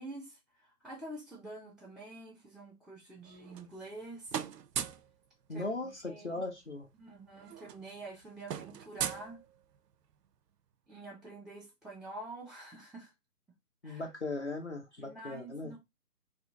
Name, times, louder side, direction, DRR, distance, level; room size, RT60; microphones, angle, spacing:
voice 1, 0.0-4.5 5.5-6.4 6.9-9.4 10.9-13.1 13.8-14.1 15.0-15.8, right 2 dB, ahead, 0.4 m, -47 dB
sound 1, 3.2-4.0 4.3-5.1 6.5-6.6 6.8-7.0 7.3-9.9, right 9 dB, 90° right, 0.6 m, -39 dB
voice 2, 5.5-6.9 13.8-15.7, left 2 dB, 45° left, 0.6 m, -38 dB
2.7 x 2.6 x 3.6 m
hypercardioid pair, 180°, 47 cm